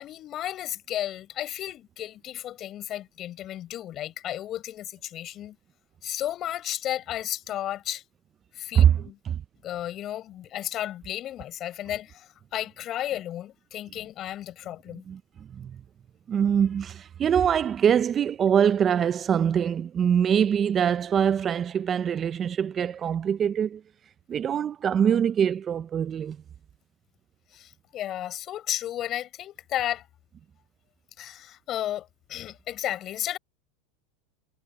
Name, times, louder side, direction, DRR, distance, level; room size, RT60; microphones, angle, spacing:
voice 1, 0.0-5.6 6.0-8.0 8.5-9.2 9.6-15.0 27.5-30.1 31.2-33.4, left 12 dB, 40° left, 6.1 m, -33 dB
voice 2, 8.7-9.4 15.1-15.2 15.5-15.8 16.3-23.8 24.3-26.4, right 8 dB, 30° right, 0.7 m, -23 dB
hypercardioid pair, 115°, 0 cm